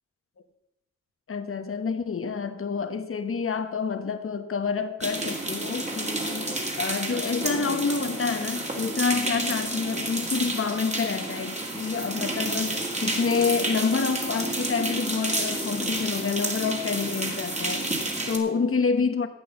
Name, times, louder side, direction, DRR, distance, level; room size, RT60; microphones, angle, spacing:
voice 1, 1.3-19.3, left 5 dB, 45° left, 1.1 m, -28 dB
sound 1, 5.0-18.4, right 2 dB, 25° right, 2.3 m, -30 dB
11.5 x 8.6 x 7.0 m
wide cardioid pair, 100°, 30 cm